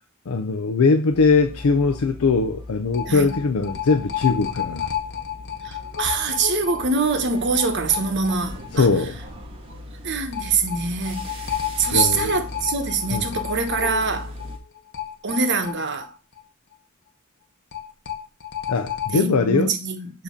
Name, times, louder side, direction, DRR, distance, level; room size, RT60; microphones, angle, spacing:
voice 1, 0.3-4.9 8.7-9.2 11.9-12.3 13.1-13.2 18.7-19.7, left 4 dB, 80° left, 0.5 m, -20 dB
sound 1, 1.1-14.6, left 1 dB, 25° right, 1.4 m, -39 dB
sound 2, 1.6-1.7 1.9-2.0 2.9-8.7 9.0-9.1 10.3-16.4 16.7-16.8 17.7-19.2, left 10 dB, 50° left, 1.0 m, -31 dB
voice 2, 3.1-3.4 5.6-8.9 10.0-11.3 11.8-14.3 15.2-16.1 19.1-20.2, right 4 dB, 55° right, 1.1 m, -24 dB
7.2 x 2.9 x 5.1 m
head